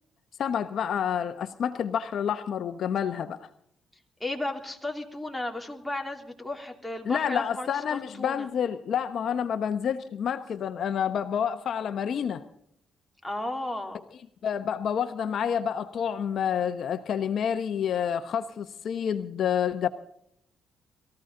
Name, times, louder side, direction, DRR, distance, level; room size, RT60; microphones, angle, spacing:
voice 1, 0.4-3.5 7.0-12.4 14.4-19.9, left 8 dB, 65° left, 10 dB, 0.9 m, -28 dB
voice 2, 4.2-8.5 13.2-14.0, left 2 dB, 5° left, 1 dB, 3.0 m, -34 dB
23.0 x 15.0 x 3.8 m, 0.70 s
cardioid pair, 90°, 0 cm